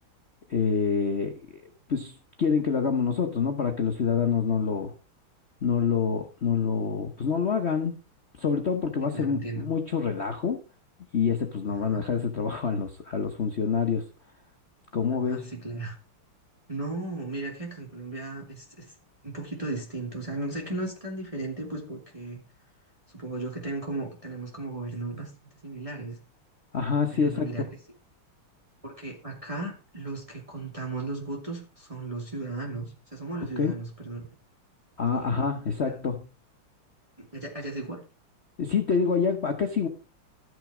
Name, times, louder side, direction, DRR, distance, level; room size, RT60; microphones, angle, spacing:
voice 1, 0.5-1.6 1.9-4.9 5.6-8.0 8.4-10.6 11.1-14.0 14.9-15.5 26.7-27.7 33.6-33.7 35.0-36.3 38.6-39.9, left 6 dB, 45° left, 5 dB, 0.9 m, -26 dB
voice 2, 9.0-9.7 11.7-12.0 15.3-16.0 16.7-18.9 19.2-22.4 23.1-25.3 25.6-26.2 27.1-27.7 28.8-34.3 35.1-35.3 35.9-36.0 37.2-38.0, right 2 dB, 15° right, -1 dB, 2.5 m, -36 dB
13.0 x 6.3 x 4.9 m, 0.34 s
omnidirectional pair, 2.4 m